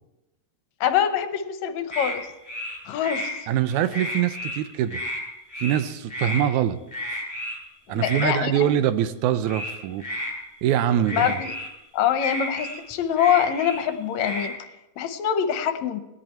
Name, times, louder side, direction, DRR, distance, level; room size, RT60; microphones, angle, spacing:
voice 1, 0.8-2.3 2.9-3.5 7.9-8.7 11.1-11.5 11.9-14.6 15.0-16.0, left 9 dB, 75° left, 9 dB, 1.9 m, -24 dB
sound 1, 1.9-2.2 2.4-3.3 3.7-4.6 4.9-5.2 5.5-5.8 6.1-6.4 6.9-7.6 8.0-8.3 9.5-10.3 11.0-11.7 12.2-13.8 14.2-14.5, left 1 dB, 5° left, 3.1 m, -32 dB
voice 2, 3.5-5.0 5.6-6.8 7.9-10.1 10.6-11.4, right 11 dB, 85° right, 12 dB, 2.1 m, -23 dB
17.5 x 10.5 x 4.4 m, 0.96 s
omnidirectional pair, 3.4 m